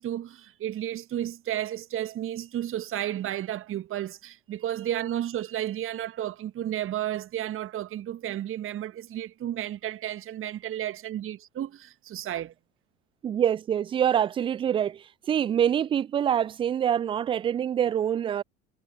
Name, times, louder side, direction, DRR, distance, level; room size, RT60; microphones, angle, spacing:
voice 1, 0.0-12.5, right 12 dB, 30° right, 1.5 m, -32 dB
voice 2, 13.2-18.4, right 9 dB, 15° right, 0.4 m, -25 dB
figure-of-eight pair, 70°, 40 cm